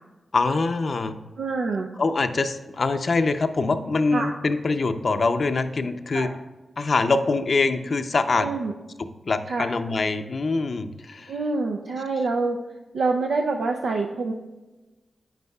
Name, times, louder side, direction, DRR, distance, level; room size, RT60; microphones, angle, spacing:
voice 1, 0.3-1.1 2.0-6.3 6.8-8.5 9.0-11.3, left 3 dB, 60° left, 9 dB, 0.5 m, -24 dB
voice 2, 1.4-1.9 4.1-4.3 6.1-6.3 8.4-8.7 9.5-9.7 11.3-12.6 12.9-14.3, right 3 dB, 80° right, 2 dB, 0.5 m, -26 dB
8.7 x 8.0 x 2.3 m, 1.2 s
supercardioid pair, 40°, 0 cm